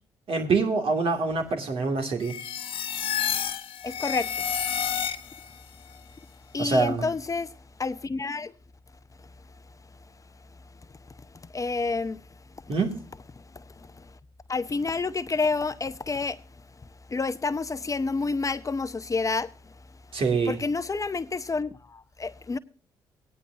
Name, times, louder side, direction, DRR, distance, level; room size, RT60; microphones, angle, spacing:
voice 1, 0.3-2.3 6.6-7.0 12.7-13.0 20.1-20.6, right 4 dB, 60° right, 2.6 m, -25 dB
sound 1, 2.2-5.6, left 8 dB, 60° left, 0.9 m, -30 dB
voice 2, 3.8-4.3 6.5-7.5 7.8-8.5 11.5-12.2 12.7-12.8 14.5-16.4 17.1-19.5 20.5-22.6, left 4 dB, 30° left, 0.7 m, -29 dB
18.0 x 9.9 x 2.8 m
hypercardioid pair, 50°, 11 cm